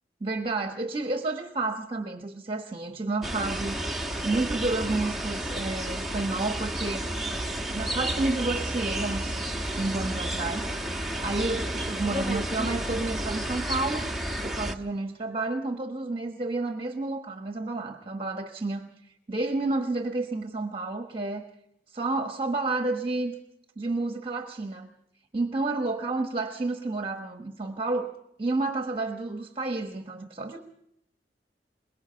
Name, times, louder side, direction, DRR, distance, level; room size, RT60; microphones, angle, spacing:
voice 1, 0.2-3.8 4.2-7.1 7.7-9.4 9.7-14.1 14.4-21.4 21.9-23.4 23.8-24.9 25.3-28.1 28.4-30.6, right 2 dB, 30° right, 5 dB, 1.2 m, -30 dB
sound 1, 3.2-14.7, right 1 dB, ahead, 1.2 m, -31 dB
23.0 x 21.5 x 5.7 m, 0.79 s
head